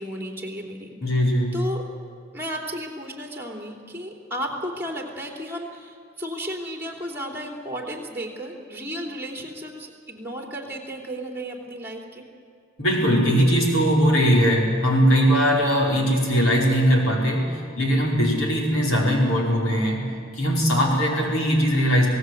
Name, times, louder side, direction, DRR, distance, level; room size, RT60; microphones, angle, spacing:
voice 1, 0.0-1.0 1.5-2.0 2.3-12.3, equal, 10° right, 1 dB, 3.3 m, -33 dB
voice 2, 1.0-1.6 12.8-20.1 20.3-22.1, equal, 75° left, -1 dB, 5.2 m, -20 dB
27.0 x 18.0 x 8.1 m, 2.2 s
head